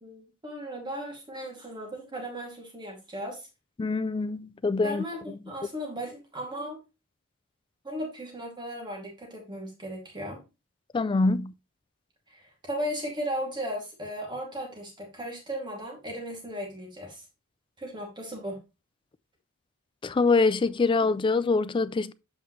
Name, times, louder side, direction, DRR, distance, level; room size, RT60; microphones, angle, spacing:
voice 1, 0.0-3.5 4.8-6.8 7.8-10.4 12.3-17.2 17.8-18.6, equal, 20° right, 2.4 m, -36 dB
voice 2, 3.8-5.0 10.9-11.5 20.0-22.1, left 3 dB, 25° left, 0.3 m, -24 dB
7.9 x 5.4 x 3.1 m
head